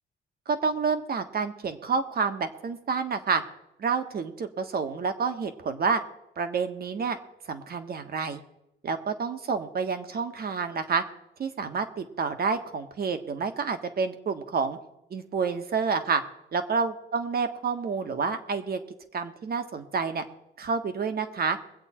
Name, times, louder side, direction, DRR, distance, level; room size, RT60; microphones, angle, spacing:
voice 1, 0.5-3.4 3.8-6.0 6.4-7.2 7.5-8.4 8.8-11.0 11.4-14.8 15.1-16.2 16.5-18.8 19.1-20.2 20.6-21.6, right 5 dB, 50° right, 8 dB, 1.5 m, -29 dB
23.0 x 8.0 x 4.4 m, 0.89 s
cardioid pair, 90°, 20 cm